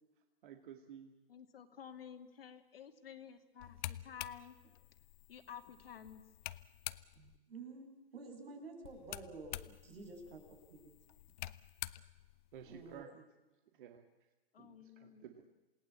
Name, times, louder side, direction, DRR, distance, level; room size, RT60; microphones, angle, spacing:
voice 1, 0.4-1.1 12.5-13.1 13.7-14.1 14.6-15.4, right 9 dB, 60° right, 6 dB, 2.2 m, -53 dB
voice 2, 1.3-4.6 5.3-6.2 14.5-15.3, left 8 dB, 75° left, 6 dB, 2.6 m, -52 dB
sound 1, 3.6-7.4 8.8-13.0, left 14 dB, 55° left, 0.9 m, -48 dB
voice 3, 7.2-7.9 8.1-10.9 12.7-13.3, right 3 dB, 80° right, 3 dB, 7.4 m, -51 dB
28.0 x 18.0 x 8.3 m, 1.1 s
hypercardioid pair, 125°, 29 cm